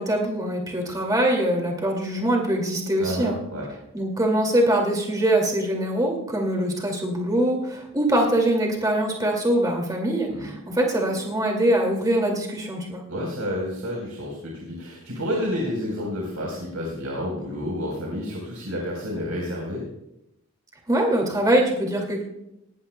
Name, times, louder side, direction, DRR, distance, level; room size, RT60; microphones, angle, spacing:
voice 1, 0.0-3.4 3.9-13.0 20.9-22.2, right 1 dB, 15° right, 0 dB, 2.3 m, -23 dB
voice 2, 3.0-3.7 10.3-10.5 13.1-19.8, equal, 90° right, -2 dB, 4.2 m, -30 dB
19.0 x 18.5 x 2.3 m, 0.86 s
head